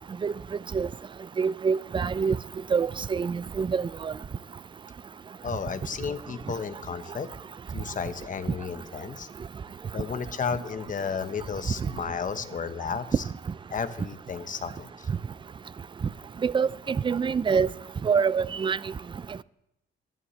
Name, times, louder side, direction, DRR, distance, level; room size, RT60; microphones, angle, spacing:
voice 1, 1.4-2.4 2.7-4.1 16.4-17.7 18.0-18.8, right 6 dB, 25° right, 0.4 m, -25 dB
voice 2, 5.4-7.3 7.7-9.3 9.9-13.0 13.7-15.1, left 6 dB, 40° left, 1.0 m, -33 dB
21.5 x 11.5 x 3.2 m
cardioid pair, 90°, 20 cm